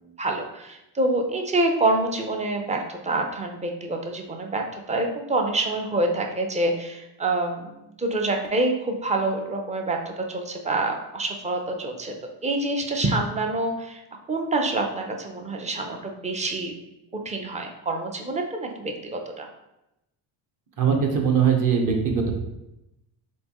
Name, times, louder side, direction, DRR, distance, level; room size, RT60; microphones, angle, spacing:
voice 1, 0.0-12.1 12.4-14.0 14.3-16.7 17.3-19.5, right 2 dB, 15° right, 3 dB, 0.4 m, -26 dB
voice 2, 20.8-22.3, right 6 dB, 45° right, 1 dB, 1.0 m, -21 dB
4.4 x 3.8 x 2.9 m, 0.90 s
cardioid pair, 125°, 47 cm